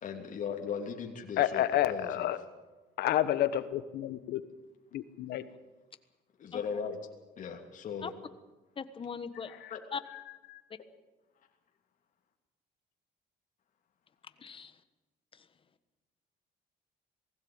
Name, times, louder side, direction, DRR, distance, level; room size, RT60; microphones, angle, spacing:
voice 1, 0.0-2.3 6.4-7.0 7.4-8.1 9.7-9.8, left 6 dB, 50° left, 2 dB, 3.0 m, -38 dB
voice 2, 1.4-2.4 3.0-4.4 4.9-5.4 9.6-9.7 10.5-10.6, left 12 dB, 75° left, 13 dB, 1.3 m, -30 dB
voice 3, 8.8-9.6 9.9-10.0 14.4-14.8 15.3-15.5, left 6 dB, 30° left, 12 dB, 1.3 m, -39 dB
20.0 x 16.5 x 8.8 m, 1.2 s
cardioid pair, 110°, 17 cm